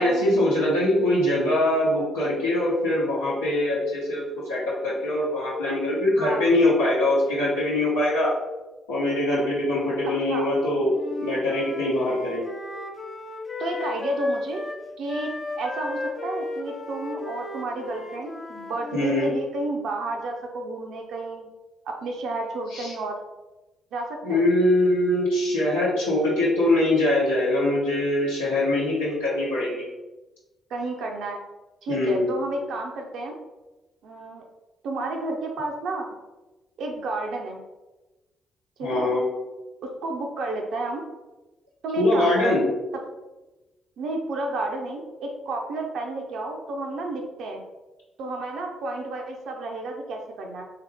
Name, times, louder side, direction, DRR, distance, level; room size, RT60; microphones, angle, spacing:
voice 1, 0.0-8.3 8.9-12.4 18.9-19.3 22.7-22.9 24.2-29.8 31.9-32.3 38.8-39.2 42.0-42.7, left 1 dB, 80° left, -9 dB, 0.8 m, -23 dB
voice 2, 6.2-6.5 10.0-10.5 13.6-14.6 15.0-15.3 15.6-21.5 21.9-23.2 23.9-24.4 30.7-31.4 31.8-33.4 34.0-34.4 34.8-36.1 36.8-37.6 38.8-39.1 39.8-41.0 41.8-42.6 44.0-47.6 48.2-50.6, right 2 dB, 60° right, 2 dB, 0.5 m, -31 dB
Wind instrument woodwind instrument, 10.9-14.8 15.1-19.4, left 2 dB, 35° left, 0.6 m, -35 dB
3.5 x 2.8 x 3.4 m, 1.1 s
figure-of-eight pair, 40°, 0 cm